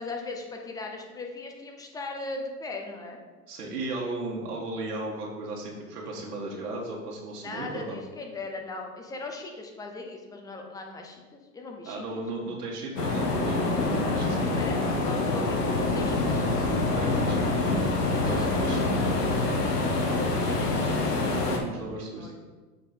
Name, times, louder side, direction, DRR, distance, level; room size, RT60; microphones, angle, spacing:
voice 1, 0.0-3.2 7.4-12.2 13.9-14.2 14.5-17.0 17.3-17.5 18.2-19.0 20.2-21.0 21.8-22.4, left 3 dB, 10° left, 2 dB, 0.4 m, -39 dB
voice 2, 3.5-8.0 11.8-14.8 16.9-17.7 18.2-18.8 21.6-22.4, right 2 dB, 80° right, -3 dB, 1.5 m, -36 dB
sound 1, 13.0-21.6, left 2 dB, 75° left, 1.3 m, -26 dB
6.9 x 4.4 x 4.2 m, 1.3 s
hypercardioid pair, 115°, 47 cm